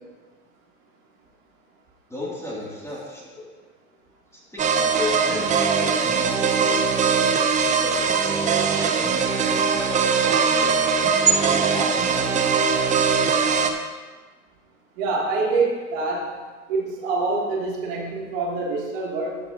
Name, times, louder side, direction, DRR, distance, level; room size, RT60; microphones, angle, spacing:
voice 1, 2.1-3.5 4.3-7.1 7.8-9.0 9.4-10.9 11.4-12.3, left 2 dB, 5° left, -7 dB, 3.0 m, -35 dB
sound 1, 4.6-13.7, right 5 dB, 15° right, 0.6 m, -21 dB
voice 2, 15.0-16.4 16.7-19.4, right 3 dB, 55° right, -3 dB, 3.2 m, -25 dB
15.5 x 6.8 x 3.0 m, 1.3 s
hypercardioid pair, 105°, 45 cm